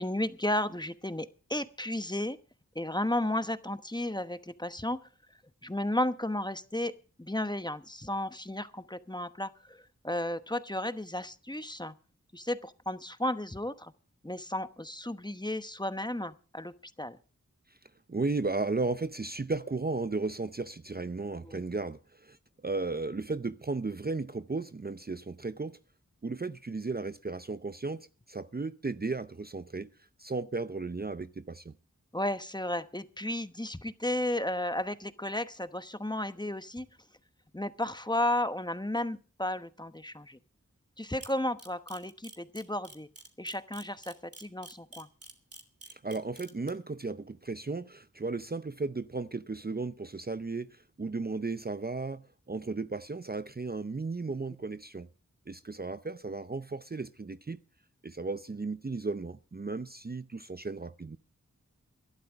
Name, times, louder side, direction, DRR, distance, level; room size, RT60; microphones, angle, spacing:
voice 1, 0.0-2.4 2.7-5.0 5.6-11.9 12.3-13.9 14.2-16.7 17.0-17.2 21.4-21.6 32.1-36.9 37.5-40.4 41.0-43.1 43.4-45.1, left 1 dB, 15° left, 1.0 m, -33 dB
voice 2, 18.1-25.8 26.2-29.9 30.2-31.7 45.9-55.1 55.5-57.6 58.0-61.2, right 3 dB, 30° right, 0.6 m, -35 dB
Camera, 41.2-46.7, right 3 dB, 50° right, 2.7 m, -48 dB
22.0 x 12.0 x 3.5 m
wide cardioid pair, 45°, 31 cm